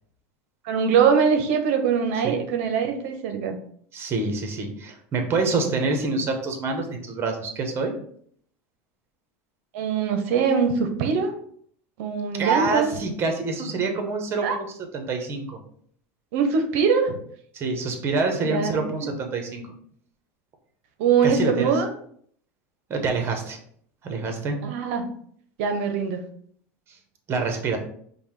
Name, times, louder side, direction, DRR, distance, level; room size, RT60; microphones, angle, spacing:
voice 1, 0.6-3.6 9.7-11.3 12.0-12.9 14.4-14.6 16.3-17.2 18.4-19.1 21.0-21.9 24.6-25.1 25.6-26.2, right 6 dB, 70° right, 6 dB, 0.6 m, -22 dB
voice 2, 3.9-7.9 12.4-14.7 14.9-15.6 17.5-19.6 21.2-21.7 22.9-23.6 24.0-24.6 27.3-27.8, right 3 dB, 35° right, 4 dB, 0.9 m, -26 dB
5.2 x 2.2 x 3.1 m, 0.62 s
supercardioid pair, 115°, 7 cm